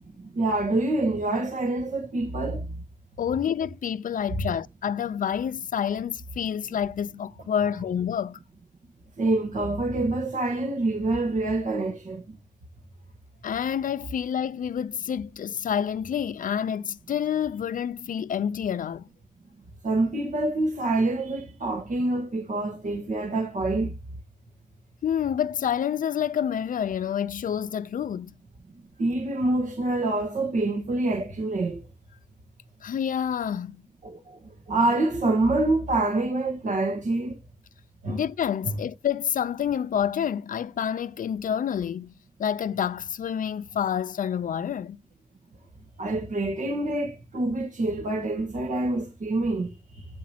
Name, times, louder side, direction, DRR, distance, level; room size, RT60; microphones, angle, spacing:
voice 1, 0.2-2.7 9.2-12.2 19.8-23.9 29.0-31.8 34.0-34.4 34.7-37.4 38.0-38.2 46.0-50.1, right 2 dB, 70° right, 1.5 m, -26 dB
voice 2, 3.2-8.4 13.4-19.1 25.0-28.3 32.8-33.8 38.1-42.1 42.4-45.0, left 8 dB, 85° left, 0.5 m, -28 dB
9.5 x 8.4 x 2.8 m
wide cardioid pair, 85°, 14 cm